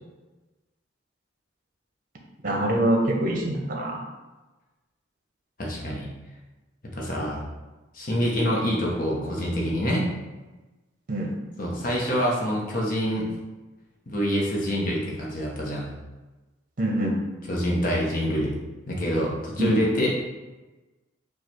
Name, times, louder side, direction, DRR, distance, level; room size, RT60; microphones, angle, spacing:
voice 1, 2.4-4.1 11.1-11.3 16.8-17.2 19.6-19.8, right 1 dB, 45° right, 1 dB, 0.7 m, -24 dB
voice 2, 5.6-6.1 7.0-7.4 7.9-10.1 11.6-13.3 14.1-15.9 17.5-18.5 18.9-20.1, equal, 45° left, -3 dB, 1.0 m, -26 dB
4.8 x 2.4 x 4.4 m, 1.2 s
head